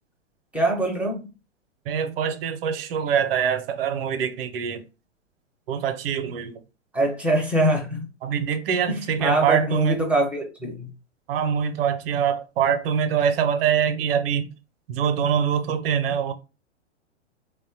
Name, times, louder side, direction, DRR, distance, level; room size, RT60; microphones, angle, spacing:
voice 1, 0.5-1.3 6.9-8.1 8.9-10.9, right 1 dB, 5° right, 0.5 m, -24 dB
voice 2, 1.9-4.8 5.7-6.6 8.2-10.0 11.3-14.5 14.9-16.3, right 8 dB, 50° right, 0.6 m, -24 dB
3.1 x 2.1 x 2.7 m
figure-of-eight pair, 110°, 37 cm